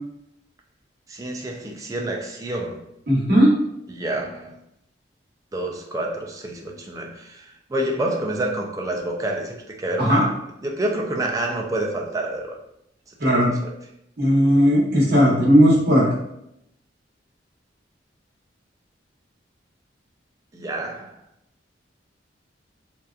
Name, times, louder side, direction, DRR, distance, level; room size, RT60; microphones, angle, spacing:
voice 1, 1.1-2.8 3.9-4.6 5.5-12.6 13.2-13.7 20.5-21.2, right 1 dB, 20° right, 0.3 m, -28 dB
voice 2, 3.1-3.5 10.0-10.2 13.2-13.5 14.2-16.1, equal, 60° right, 0.9 m, -16 dB
2.7 x 2.3 x 2.3 m
head